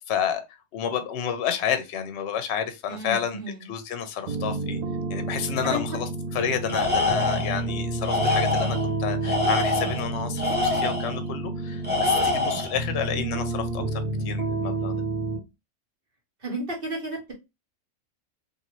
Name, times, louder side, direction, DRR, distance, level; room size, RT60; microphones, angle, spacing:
voice 1, 0.1-0.4 0.7-3.4 3.7-4.8 5.1-6.1 6.3-14.9, left 8 dB, 65° left, 0.8 m, -30 dB
voice 2, 2.9-3.7 5.6-6.0 16.4-17.3, right 1 dB, 45° right, 1.2 m, -33 dB
sound 1, 4.3-15.4, right 2 dB, 90° right, 1.1 m, -30 dB
Tools, 6.7-7.6 8.0-8.9 9.2-11.2 11.8-12.8, left 3 dB, 10° right, 0.6 m, -25 dB
2.6 x 2.6 x 3.0 m
omnidirectional pair, 1.3 m